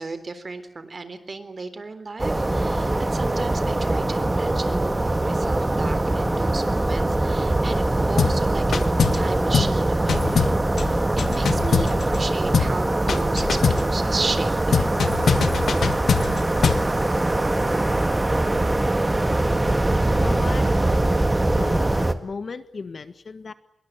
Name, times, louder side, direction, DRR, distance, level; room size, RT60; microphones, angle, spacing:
voice 1, 0.0-8.8 9.1-14.9, right 3 dB, 40° right, 12 dB, 3.6 m, -34 dB
sound 1, 2.2-22.1, right 2 dB, 20° right, 1.9 m, -22 dB
sound 2, 8.2-8.4 8.7-9.3 9.5-9.8 10.1-12.2 12.5-12.8 13.1-13.9 14.7-16.9, left 6 dB, 85° left, 1.5 m, -23 dB
voice 2, 20.2-20.7 21.6-23.5, left 4 dB, 55° left, 12 dB, 1.6 m, -35 dB
26.0 x 22.5 x 9.0 m, 0.70 s
wide cardioid pair, 125°, 0 cm